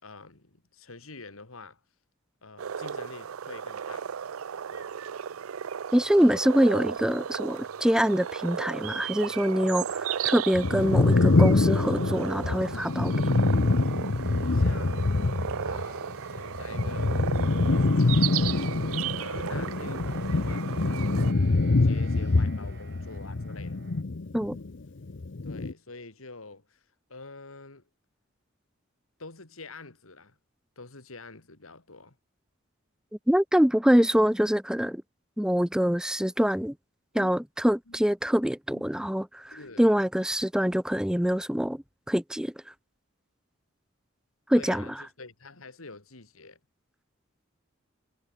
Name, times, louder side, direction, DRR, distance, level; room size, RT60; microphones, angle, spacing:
voice 1, 0.0-1.8 2.4-4.1 4.7-4.9 14.5-18.7 19.1-23.8 25.4-26.8 27.1-27.9 29.2-30.4 30.8-32.2 37.1-37.4 37.9-38.0 38.7-38.9 39.5-39.9 44.5-46.6, left 3 dB, 90° left, 2.6 m, -46 dB
sound 1, 2.6-21.3, right 8 dB, 85° right, 0.5 m, -35 dB
voice 2, 5.9-13.1 24.3-24.6 33.3-35.0 35.4-36.7 37.1-42.5 44.5-44.8, equal, 5° right, 0.6 m, -25 dB
sound 2, 6.0-24.0, right 4 dB, 55° right, 6.2 m, -51 dB
sound 3, 10.5-15.8 16.1-24.7 25.0-25.7, left 3 dB, 60° left, 0.7 m, -25 dB
head